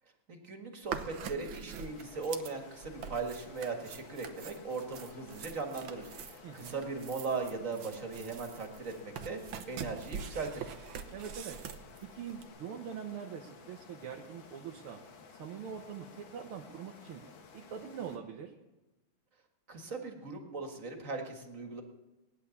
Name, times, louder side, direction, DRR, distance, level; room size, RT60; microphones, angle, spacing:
voice 1, 0.3-10.7 19.7-21.8, right 4 dB, 40° right, 3 dB, 2.0 m, -39 dB
sound 1, 0.8-12.4, right 7 dB, 70° right, 1.7 m, -44 dB
sound 2, 1.8-18.2, left 5 dB, 65° left, 2.1 m, -54 dB
voice 2, 6.4-6.7 11.1-11.6 12.0-15.0 15.4-17.2 17.5-18.6, right 7 dB, 85° right, 1 dB, 2.0 m, -43 dB
19.0 x 10.0 x 7.1 m, 1.0 s
omnidirectional pair, 2.3 m